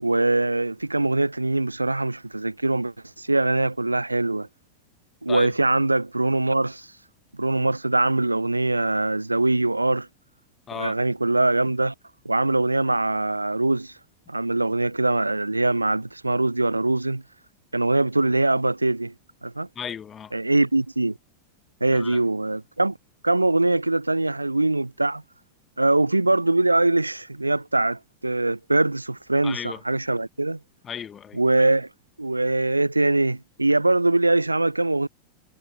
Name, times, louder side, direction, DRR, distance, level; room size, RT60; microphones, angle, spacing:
voice 1, 0.0-4.5 5.2-6.9 7.4-10.1 10.7-11.9 12.2-13.9 14.3-17.2 17.7-19.1 19.4-19.7 20.3-21.1 21.8-22.9 23.2-25.2 25.8-30.6 31.3-31.9 32.2-35.1, right 2 dB, 85° right, 0.6 m, -22 dB
voice 2, 19.8-20.3 21.9-22.2 29.4-29.8 30.8-31.4, left 8 dB, 25° left, 2.0 m, -35 dB
figure-of-eight pair, 90°, 0 cm